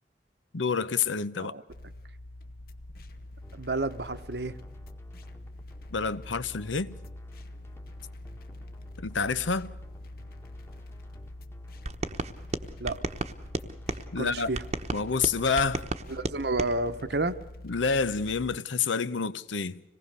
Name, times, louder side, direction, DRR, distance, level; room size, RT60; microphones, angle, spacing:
voice 1, 0.5-1.5 5.9-6.9 9.0-9.7 14.1-14.5 14.9-15.9 17.6-19.8, left 5 dB, 90° left, 0.8 m, -28 dB
sound 1, 1.7-18.6, left 1 dB, 50° left, 1.0 m, -45 dB
sound 2, 3.4-17.2, equal, 15° left, 1.4 m, -55 dB
voice 2, 3.5-4.6 12.8-13.0 14.2-14.6 16.1-17.4, right 2 dB, 60° right, 0.9 m, -30 dB
sound 3, 11.9-14.0 14.5-16.7, right 2 dB, 35° right, 1.0 m, -33 dB
26.0 x 19.0 x 6.7 m
head